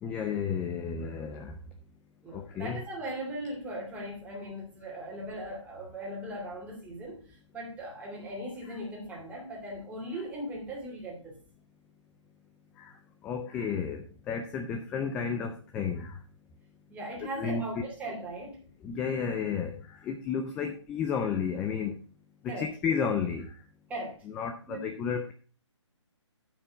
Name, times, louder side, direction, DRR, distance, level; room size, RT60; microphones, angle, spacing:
voice 1, 0.0-1.5 2.3-2.8 8.7-8.8 12.8-12.9 13.2-16.2 17.2-17.7 18.8-22.0 22.4-23.5 24.3-25.3, left 6 dB, 5° left, 0.3 m, -32 dB
voice 2, 2.2-11.4 16.9-18.6 20.6-20.7 22.5-22.7 23.9-24.2 24.7-24.9, right 1 dB, 10° right, 2.6 m, -39 dB
9.4 x 5.9 x 5.1 m
figure-of-eight pair, 140°, 16 cm